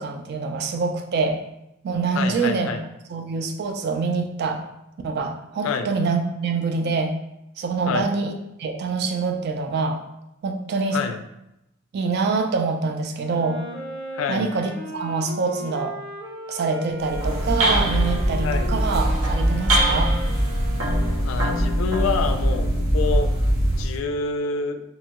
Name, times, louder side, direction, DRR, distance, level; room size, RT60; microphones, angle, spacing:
voice 1, 0.0-1.4 1.8-2.8 3.1-4.6 5.0-7.1 7.6-10.0 10.4-11.0 11.9-13.6 14.3-16.0 16.5-20.1, right 4 dB, 55° right, 4 dB, 0.3 m, -25 dB
voice 2, 2.1-2.8 5.6-5.9 7.9-8.1 10.9-11.2 14.1-14.5 18.4-18.7 21.2-22.7 22.9-23.3 23.8-24.8, left 5 dB, 75° left, 7 dB, 0.3 m, -27 dB
Wind instrument woodwind instrument, 13.2-21.5, left 1 dB, 5° left, 0.6 m, -37 dB
sound 1, 17.0-24.0, right 1 dB, 75° right, 0.7 m, -22 dB
2.8 x 2.2 x 2.8 m, 0.86 s
head